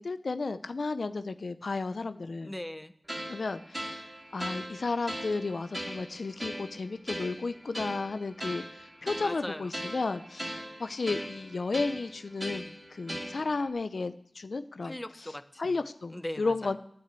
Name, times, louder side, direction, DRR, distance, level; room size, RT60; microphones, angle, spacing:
voice 1, 0.0-2.5 3.3-4.0 4.3-14.9 15.6-16.8, left 3 dB, 70° left, 10 dB, 0.5 m, -33 dB
voice 2, 2.4-2.9 9.2-9.7 13.4-13.6 14.8-15.8 16.1-16.8, left 1 dB, 20° left, 11 dB, 0.9 m, -40 dB
sound 1, 3.1-13.7, equal, 20° right, 2.8 m, -40 dB
9.6 x 9.4 x 8.2 m, 0.69 s
cardioid pair, 45°, 0 cm